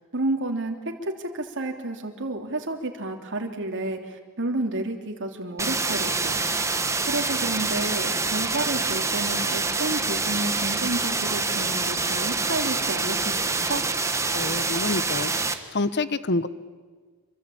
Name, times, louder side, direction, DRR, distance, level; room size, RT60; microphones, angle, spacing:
voice 1, 0.1-6.4 7.1-13.8, right 2 dB, 55° right, 3 dB, 3.2 m, -30 dB
sound 1, 5.6-15.5, right 3 dB, 15° right, 1.6 m, -26 dB
voice 2, 14.3-15.3 15.7-16.5, left 2 dB, 50° left, 15 dB, 1.1 m, -27 dB
27.0 x 24.0 x 8.8 m, 1.5 s
head